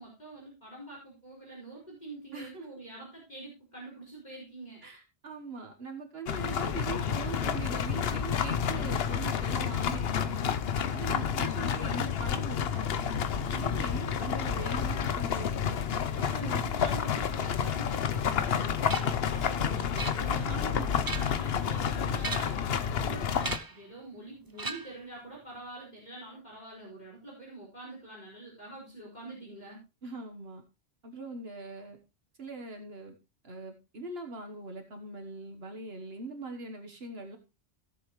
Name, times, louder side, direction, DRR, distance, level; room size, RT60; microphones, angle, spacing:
voice 1, 0.0-4.8 16.2-20.5 21.1-29.8, right 2 dB, 40° left, -5 dB, 5.1 m, -46 dB
voice 2, 2.3-2.7 4.8-10.3 10.7-13.0 13.5-15.8 16.2-16.7 20.3-21.0 21.3-21.5 30.0-30.6 31.0-32.0 32.4-33.1 33.4-37.4, right 3 dB, 70° right, 4 dB, 1.6 m, -41 dB
sound 1, 6.3-23.6, left 7 dB, 70° left, 1.0 m, -30 dB
sound 2, 18.9-19.2 20.0-20.6 20.9-21.5 22.2-22.7 23.4-23.8 24.6-25.1, right 3 dB, 25° right, 0.6 m, -38 dB
16.5 x 7.1 x 3.1 m, 0.27 s
omnidirectional pair, 1.1 m